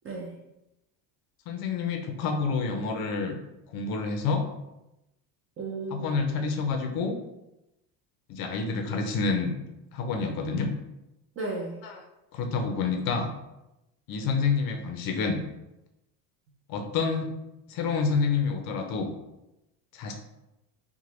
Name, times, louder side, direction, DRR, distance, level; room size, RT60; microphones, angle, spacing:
voice 1, 1.5-3.4 3.7-4.4 5.9-7.2 8.3-9.6 9.9-10.7 11.8-12.0 12.3-13.3 14.1-15.4 16.7-17.3 17.7-19.1 19.9-20.1, left 4 dB, 50° left, 5 dB, 0.5 m, -28 dB
voice 2, 5.6-6.1 11.4-11.8, right 3 dB, 30° right, -1 dB, 0.4 m, -34 dB
2.8 x 2.2 x 2.9 m, 0.91 s
supercardioid pair, 110°, 49 cm